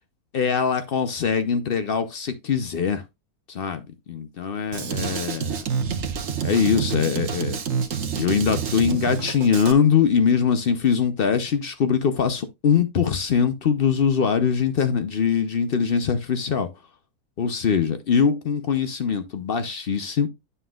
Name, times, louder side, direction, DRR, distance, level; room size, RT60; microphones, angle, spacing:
voice 1, 0.3-3.0 3.5-5.7 6.4-7.6 8.2-16.7 17.4-20.3, left 6 dB, 55° left, 0.7 m, -22 dB
Drum kit, 4.7-9.7, right 6 dB, 60° right, 1.3 m, -28 dB
9.7 x 5.6 x 2.3 m
omnidirectional pair, 1.5 m